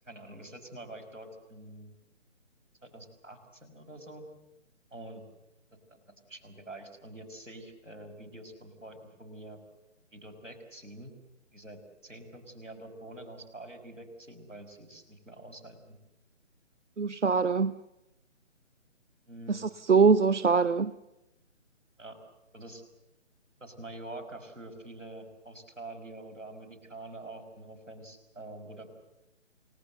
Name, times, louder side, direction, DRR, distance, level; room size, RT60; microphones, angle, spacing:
voice 1, 0.1-1.9 2.8-4.3 4.9-5.2 5.9-6.0 6.3-9.6 10.1-11.1 11.5-16.0 19.2-19.7 22.0-22.2 22.5-22.8 23.6-28.9, right 1 dB, 90° right, 4 dB, 5.9 m, -46 dB
voice 2, 17.0-17.7 19.5-20.9, right 5 dB, 70° right, 15 dB, 0.9 m, -23 dB
29.5 x 18.5 x 7.9 m, 0.94 s
figure-of-eight pair, 150°, 37 cm